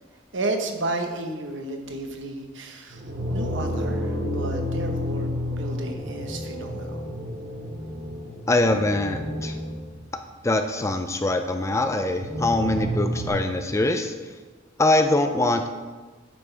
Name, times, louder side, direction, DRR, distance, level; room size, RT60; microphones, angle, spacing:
voice 1, 0.3-3.0 3.3-7.0, right 2 dB, 65° right, 4 dB, 1.1 m, -32 dB
sound 1, 1.8-1.9 2.9-10.1 12.2-13.3, equal, 90° right, 2.3 m, -30 dB
voice 2, 8.5-9.6 10.4-14.1 14.8-15.7, left 2 dB, 15° left, 7 dB, 0.4 m, -23 dB
10.5 x 8.6 x 3.4 m, 1.3 s
head